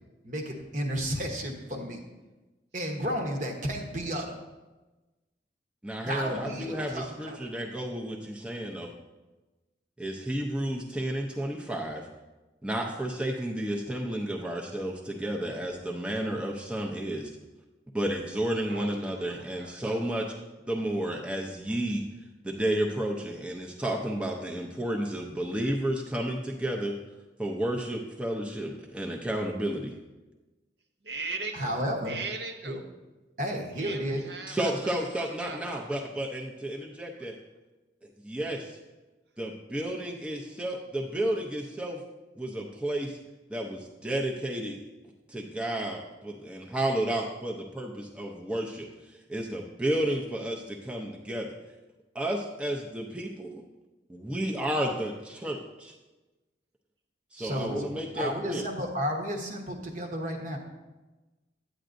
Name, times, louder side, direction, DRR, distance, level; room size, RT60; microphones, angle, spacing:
voice 1, 0.2-2.0 2.7-4.4 6.1-7.5 31.5-32.2 32.6-32.8 33.4-34.3 57.4-60.6, equal, 45° right, 3 dB, 1.0 m, -32 dB
voice 2, 5.8-8.9 10.0-12.1 12.6-17.3 17.9-20.4 20.7-22.0 22.4-26.9 27.4-29.9 34.5-37.4 38.0-38.8 39.4-42.0 42.4-43.2 43.5-44.8 45.3-51.5 52.1-53.6 54.1-55.9 57.3-58.7, right 1 dB, 5° right, -1 dB, 0.5 m, -32 dB
voice 3, 18.7-19.8 31.0-31.8 32.1-32.8 33.8-35.9, right 3 dB, 65° right, 4 dB, 0.7 m, -39 dB
9.1 x 8.9 x 2.6 m, 1.1 s
head